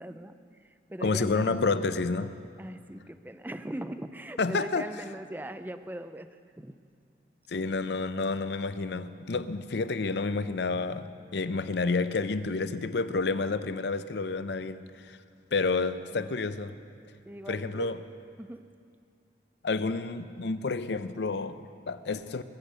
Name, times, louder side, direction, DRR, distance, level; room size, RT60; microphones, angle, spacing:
voice 1, 0.0-1.6 2.6-6.3 6.6-6.8 16.1-16.4 17.3-17.9 18.4-18.6, right 1 dB, 10° right, 10 dB, 0.4 m, -40 dB
voice 2, 1.0-2.3 4.4-4.9 7.5-15.2 15.5-16.8 17.5-18.0 19.6-22.4, left 3 dB, 80° left, 12 dB, 0.6 m, -30 dB
22.0 x 8.1 x 6.8 m, 2.3 s
head